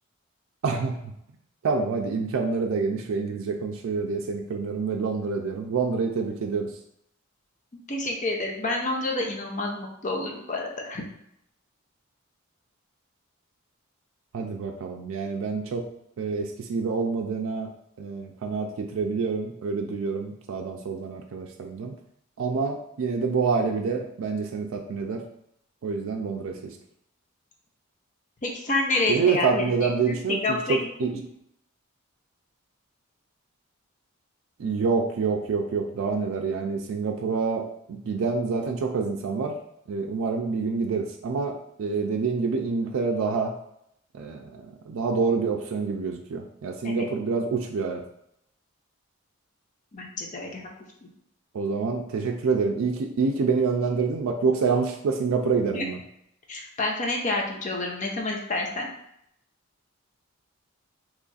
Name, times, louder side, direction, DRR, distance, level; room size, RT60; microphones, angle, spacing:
voice 1, 0.6-1.0 1.6-6.7 14.3-15.8 16.2-17.7 18.0-21.9 22.4-25.2 25.8-26.8 29.1-31.1 34.6-39.6 39.9-43.5 44.1-48.0 51.5-56.0, right 4 dB, 80° right, 2 dB, 0.4 m, -27 dB
voice 2, 7.7-11.0 28.4-30.8 46.8-47.0 49.9-50.7 51.0-51.1 55.7-55.9 56.5-58.9, left 2 dB, 40° left, 0 dB, 0.6 m, -29 dB
3.0 x 2.4 x 3.9 m, 0.76 s
head